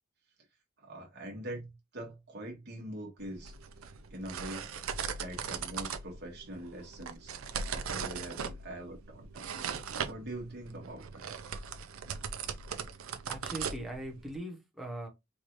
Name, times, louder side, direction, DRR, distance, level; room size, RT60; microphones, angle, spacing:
voice 1, 0.8-3.5 4.1-4.7 5.2-7.3 7.7-9.6 10.0-11.3, right 1 dB, 55° right, 1.4 m, -43 dB
sound 1, 3.2-14.4, right 6 dB, 75° right, 0.6 m, -39 dB
voice 2, 13.3-15.1, right 1 dB, ahead, 1.0 m, -40 dB
4.7 x 2.5 x 3.0 m
head